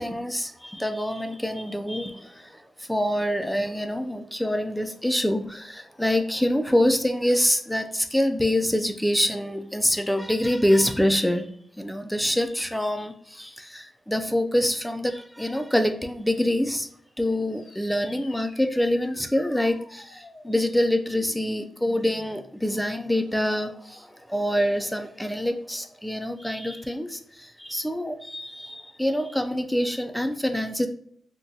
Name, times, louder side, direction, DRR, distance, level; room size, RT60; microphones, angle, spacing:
voice 1, 0.0-11.5 11.8-16.9 17.2-30.9, left 1 dB, 5° left, 7 dB, 0.3 m, -26 dB
sound 1, 17.5-22.5, left 2 dB, 55° left, 0.7 m, -49 dB
3.8 x 2.2 x 2.6 m, 0.62 s
wide cardioid pair, 150°, 0 cm